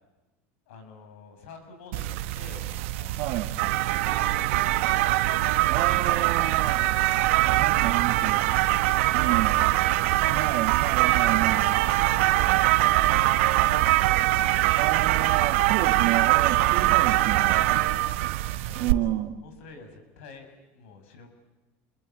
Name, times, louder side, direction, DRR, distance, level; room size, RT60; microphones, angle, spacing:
voice 1, 0.7-2.7 3.0-3.4 4.0-5.6 6.2-6.6 9.1-9.8 11.2-11.5 11.9-14.5 18.6-19.0 19.4-21.3, left 4 dB, 85° left, 6 dB, 6.8 m, -48 dB
sound 1, 1.9-18.9, right 16 dB, 80° right, 1.1 m, -23 dB
voice 2, 3.2-3.6 5.7-6.8 7.4-8.4 9.1-9.6 10.2-11.7 14.8-17.8 18.7-19.4, right 14 dB, 65° right, 3 dB, 1.6 m, -30 dB
28.5 x 22.0 x 9.1 m, 1.1 s
supercardioid pair, 110°, 7 cm